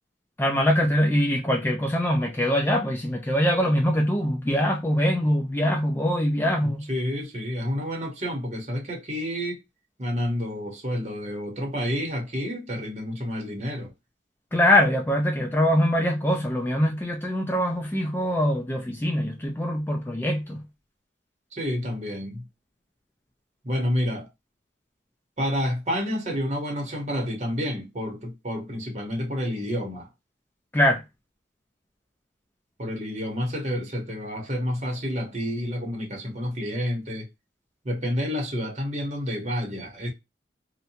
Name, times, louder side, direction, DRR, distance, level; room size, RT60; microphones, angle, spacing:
voice 1, 0.4-6.9 14.5-20.6 30.7-31.0, equal, 10° left, 0.3 m, -23 dB
voice 2, 6.6-9.6 10.0-13.9 21.5-22.5 23.6-24.3 25.4-30.1 32.8-37.3 37.8-40.1, equal, 35° right, 0.9 m, -29 dB
2.7 x 2.2 x 2.7 m
head